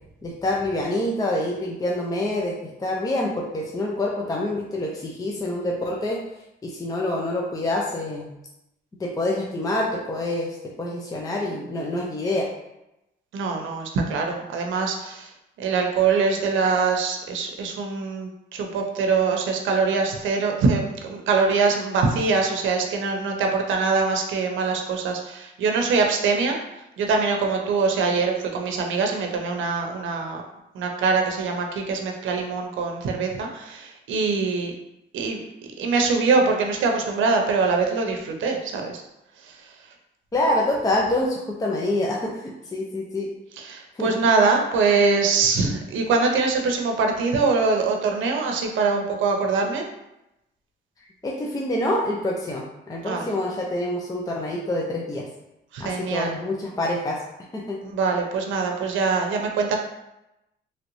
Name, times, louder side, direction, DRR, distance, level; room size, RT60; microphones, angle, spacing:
voice 1, 0.2-6.2 6.6-8.3 9.0-12.5 40.3-43.3 43.9-44.1 51.2-55.3 55.8-57.2 57.5-57.8, left 1 dB, 20° left, -2 dB, 0.5 m, -26 dB
voice 2, 13.3-15.3 15.6-26.6 27.0-30.4 30.7-34.7 35.1-35.4 35.8-39.0 39.5-39.6 43.6-49.8 53.0-53.2 55.7-56.3 57.8-59.8, right 4 dB, 75° right, 3 dB, 0.6 m, -23 dB
3.1 x 2.5 x 3.0 m, 0.89 s
cardioid pair, 90°, 20 cm